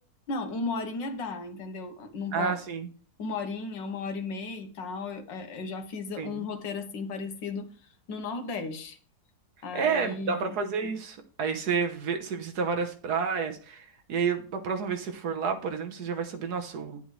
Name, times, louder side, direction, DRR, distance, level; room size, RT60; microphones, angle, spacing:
voice 1, 0.3-2.6 3.2-7.7 8.1-9.0 9.6-10.5, left 3 dB, 85° left, 6 dB, 1.8 m, -35 dB
voice 2, 2.3-2.9 6.2-6.4 9.7-17.0, right 5 dB, 65° right, 5 dB, 1.5 m, -30 dB
10.5 x 7.8 x 3.2 m, 0.42 s
omnidirectional pair, 1.9 m